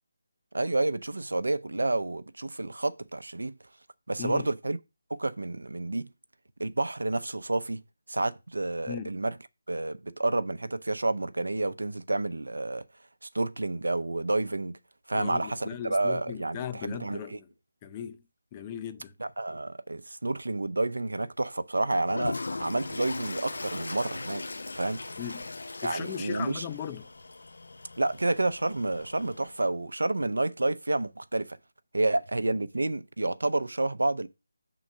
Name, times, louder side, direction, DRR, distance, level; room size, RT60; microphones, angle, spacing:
voice 1, 0.5-3.5 4.1-4.8 5.1-6.1 6.6-7.8 8.1-9.3 9.7-12.8 13.2-14.7 15.1-17.4 19.2-24.4 24.8-25.0 25.8-26.7 28.0-31.6 31.9-34.3, right 2 dB, 75° right, 0.6 m, -29 dB
voice 2, 4.2-4.5 8.9-9.1 15.1-17.5 17.8-18.2 18.5-19.1 25.2-25.5 25.8-27.1, left 9 dB, 20° left, 0.5 m, -37 dB
Toilet flush, 22.0-29.6, left 3 dB, 70° left, 0.6 m, -39 dB
6.1 x 3.9 x 6.2 m
figure-of-eight pair, 160°, 0 cm